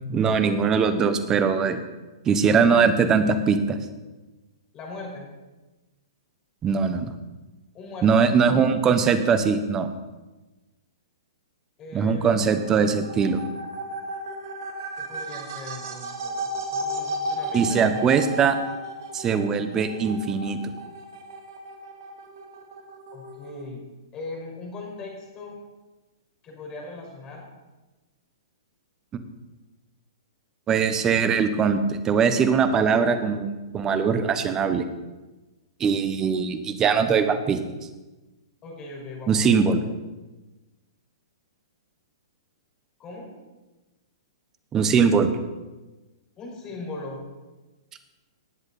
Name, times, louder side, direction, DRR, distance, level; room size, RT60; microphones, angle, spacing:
voice 1, 0.1-1.8 2.3-3.8 6.6-7.1 8.0-9.9 11.9-13.4 17.5-18.6 19.1-20.6 30.7-34.9 35.8-37.6 39.3-39.8 44.7-45.3, right 6 dB, 20° right, 10 dB, 1.1 m, -21 dB
voice 2, 4.7-5.3 7.7-8.2 11.8-12.5 15.0-17.8 23.1-23.8 24.1-25.6 26.4-27.4 38.6-39.6 43.0-43.3 46.4-47.2, left 2 dB, 25° left, 0 dB, 5.0 m, -39 dB
sound 1, 12.3-23.6, right 1 dB, 55° right, 1.9 m, -34 dB
18.5 x 8.0 x 4.2 m, 1.1 s
hypercardioid pair, 125°, 2 cm